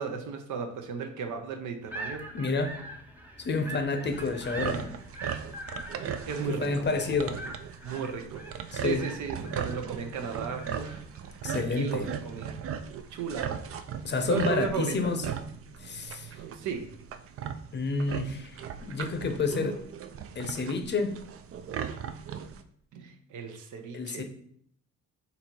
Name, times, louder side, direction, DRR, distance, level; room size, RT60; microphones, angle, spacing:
voice 1, 0.0-2.3 6.0-6.8 7.8-8.4 8.8-11.0 11.5-12.6 13.1-13.6 14.2-15.1 16.5-16.9 22.9-24.2, right 6 dB, 80° right, 6 dB, 0.8 m, -35 dB
sound 1, 1.8-13.4, right 2 dB, 5° right, 0.8 m, -44 dB
voice 2, 2.3-2.8 3.4-4.9 6.4-7.4 8.7-9.0 11.4-12.1 14.0-15.2 15.8-16.4 17.7-19.8 20.4-21.2 23.9-24.2, left 3 dB, 35° left, 7 dB, 0.7 m, -29 dB
sound 2, 4.1-22.6, right 8 dB, 50° right, 0.4 m, -38 dB
4.0 x 2.8 x 4.4 m, 0.64 s
cardioid pair, 90°, 30 cm